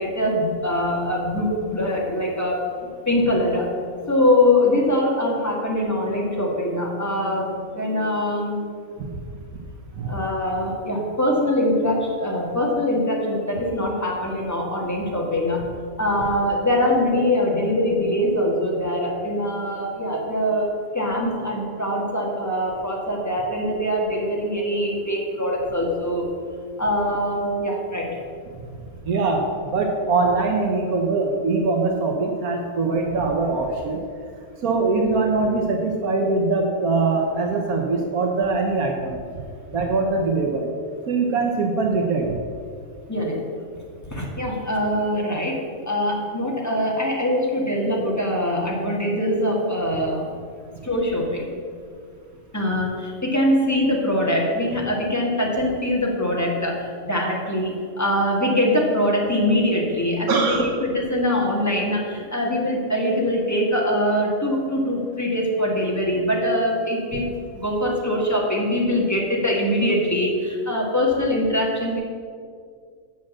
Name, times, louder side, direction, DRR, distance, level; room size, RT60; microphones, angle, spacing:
voice 1, 0.0-2.6 3.1-3.7 4.1-8.6 10.0-15.6 16.0-26.3 26.8-28.2 43.1-43.4 44.1-50.3 50.8-51.5 52.5-67.3 67.5-72.0, left 1 dB, 10° left, -3 dB, 2.0 m, -23 dB
voice 2, 29.0-34.0 34.6-39.2 39.7-40.7 41.1-42.4 60.3-60.7, right 3 dB, 80° right, 1 dB, 1.5 m, -22 dB
9.1 x 6.4 x 7.4 m, 2.2 s
omnidirectional pair, 1.5 m